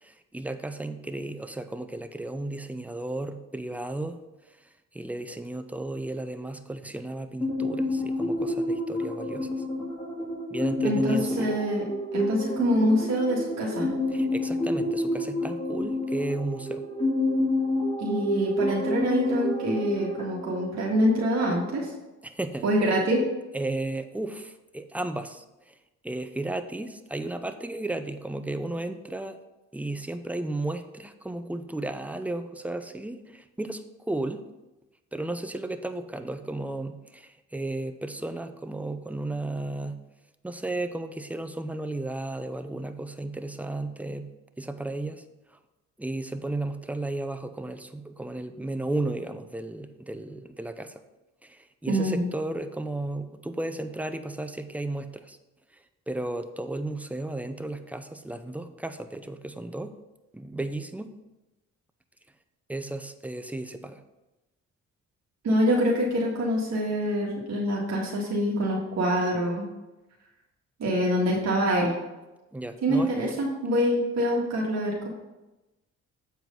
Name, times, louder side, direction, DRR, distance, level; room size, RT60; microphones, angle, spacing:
voice 1, 0.0-4.2 4.9-9.6 10.5-11.6 14.1-16.8 22.2-22.7 23.5-25.7 26.0-29.4 29.7-34.4 35.1-40.0 40.4-45.2 45.5-45.6 46.0-51.0 51.4-55.4 56.1-59.9 60.3-61.1 62.7-64.0 72.5-73.4, right 2 dB, 5° right, 9 dB, 0.6 m, -34 dB
sound 1, 7.4-21.8, left 1 dB, 15° left, 2.0 m, -29 dB
voice 2, 10.8-11.8 12.1-13.9 18.0-21.9 22.6-23.2 51.9-52.3 65.4-69.7 70.8-71.9 72.8-75.1, equal, 60° right, -3 dB, 1.8 m, -25 dB
7.8 x 4.7 x 5.3 m, 1.0 s
cardioid pair, 90°, 30 cm